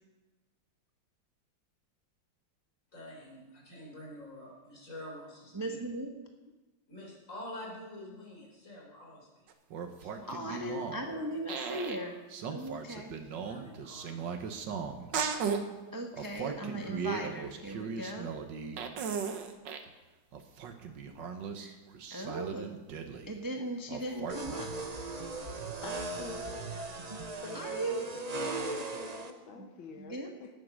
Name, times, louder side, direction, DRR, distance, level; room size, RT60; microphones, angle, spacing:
voice 1, 2.9-5.8 6.9-9.5 10.0-11.3 11.9-12.2 13.2-14.6, left 1 dB, 40° left, -3 dB, 4.7 m, -48 dB
voice 2, 5.5-6.1 10.3-12.2 12.5-13.2 15.9-18.3 21.6-21.8 22.1-22.7 23.3-24.8 27.5-28.0 29.5-29.7 30.0-30.3, right 1 dB, 15° right, 2 dB, 0.9 m, -38 dB
sound 1, 9.5-11.1 11.5-12.0 12.3-15.6 16.1-19.9 20.3-23.4 23.9-24.6, right 6 dB, 65° right, 1.7 m, -37 dB
sound 2, 24.3-29.3, right 3 dB, 40° right, 0.5 m, -38 dB
voice 3, 25.2-26.6 27.4-30.5, left 4 dB, 75° left, 3 dB, 1.9 m, -46 dB
18.5 x 8.6 x 6.3 m, 1.1 s
omnidirectional pair, 2.2 m